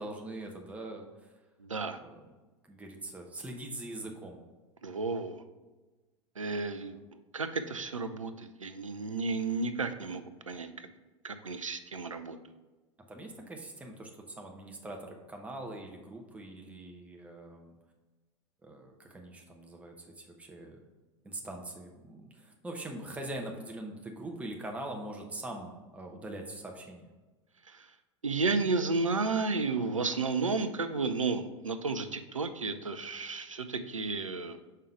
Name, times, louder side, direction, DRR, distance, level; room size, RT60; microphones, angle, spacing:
voice 1, 0.0-1.3 2.0-2.4 2.7-4.4 6.8-7.0 13.1-17.8 18.6-20.8 21.2-27.1, right 1 dB, 10° right, 1 dB, 0.8 m, -43 dB
voice 2, 1.6-2.0 4.8-5.4 6.4-7.0 7.3-10.9 11.2-12.4 27.7-27.9 28.2-34.6, right 4 dB, 90° right, 10 dB, 0.4 m, -32 dB
5.5 x 3.8 x 4.6 m, 1.2 s
figure-of-eight pair, 85°, 16 cm